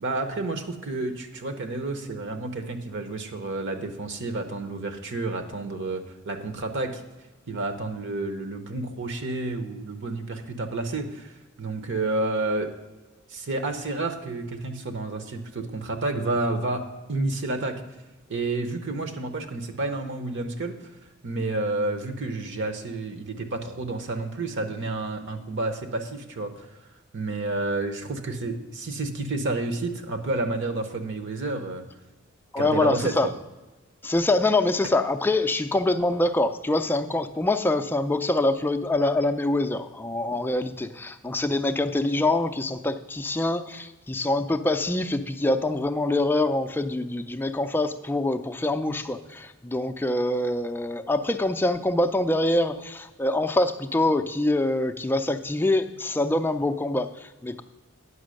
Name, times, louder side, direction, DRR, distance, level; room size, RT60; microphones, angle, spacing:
voice 1, 0.0-7.0 7.5-12.7 13.3-16.8 17.1-17.8 18.3-20.7 21.2-26.7 27.1-31.8 32.6-33.3, right 2 dB, 60° right, 7 dB, 0.9 m, -30 dB
voice 2, 32.5-33.3 34.0-57.6, left 2 dB, 10° left, 7 dB, 0.4 m, -25 dB
9.6 x 6.0 x 6.4 m, 1.2 s
head